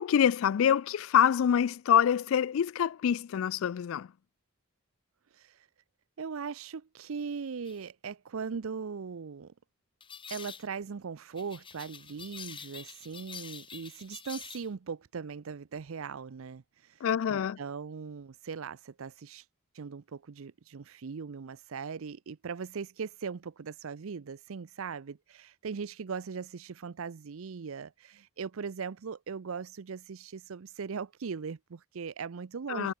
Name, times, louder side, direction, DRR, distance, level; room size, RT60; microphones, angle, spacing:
voice 1, 0.0-4.1 17.0-17.6 32.7-32.9, left 8 dB, 70° left, 0.3 m, -26 dB
voice 2, 5.3-5.7 6.2-9.5 10.3-19.5 19.7-32.9, right 5 dB, 70° right, 0.5 m, -39 dB
sound 1, 7.7-7.8 10.0-10.7 11.4-14.7, left 7 dB, 25° left, 1.7 m, -46 dB
head